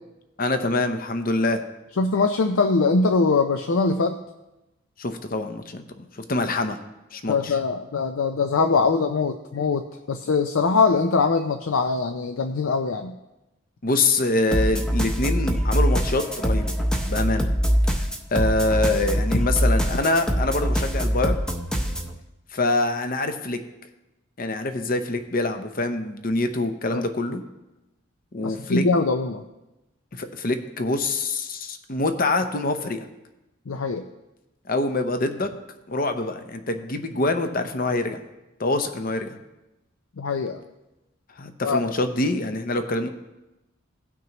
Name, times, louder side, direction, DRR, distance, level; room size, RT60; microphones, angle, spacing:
voice 1, 0.4-1.6 5.0-6.8 7.1-7.6 13.8-16.7 17.0-17.5 18.0-21.4 22.5-23.6 24.4-27.4 28.3-28.8 30.1-33.1 34.7-35.5 35.9-38.2 38.6-39.4 41.4-43.1, left 2 dB, 45° left, 7 dB, 0.7 m, -25 dB
voice 2, 2.0-4.2 7.3-13.1 26.9-27.0 28.4-29.4 33.7-34.0 40.2-40.6 41.6-41.8, left 4 dB, 80° left, 6 dB, 0.5 m, -22 dB
sound 1, 14.5-22.1, equal, 5° left, 0.7 m, -23 dB
17.0 x 6.0 x 3.0 m, 0.98 s
head